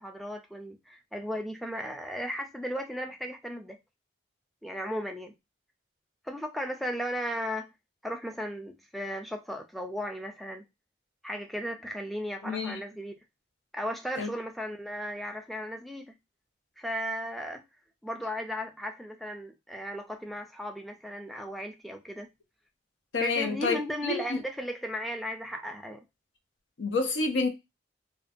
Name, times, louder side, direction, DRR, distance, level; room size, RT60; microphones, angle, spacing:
voice 1, 0.0-3.8 4.6-5.3 6.2-7.7 8.0-10.6 11.2-13.2 13.7-16.1 16.8-17.6 18.0-22.3 23.2-26.0, equal, ahead, 0.3 m, -36 dB
voice 2, 12.4-12.8 14.2-14.3 23.1-24.4 26.8-27.5, left 3 dB, 70° left, 0.6 m, -29 dB
2.5 x 2.2 x 2.5 m
head